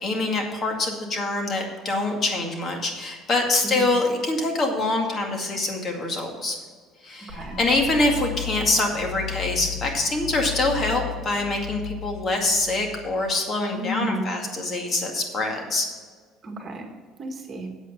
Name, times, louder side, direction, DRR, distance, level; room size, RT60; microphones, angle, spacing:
voice 1, 0.0-6.6 7.0-15.9, left 2 dB, 35° left, 2 dB, 2.1 m, -25 dB
sound 1, 7.3-13.2, left 10 dB, 90° left, 2.0 m, -35 dB
voice 2, 7.3-7.6 13.7-14.4 16.4-16.9 17.2-17.7, right 1 dB, 35° right, 3 dB, 1.7 m, -32 dB
8.3 x 8.1 x 5.8 m, 1.5 s
cardioid pair, 120°, 0 cm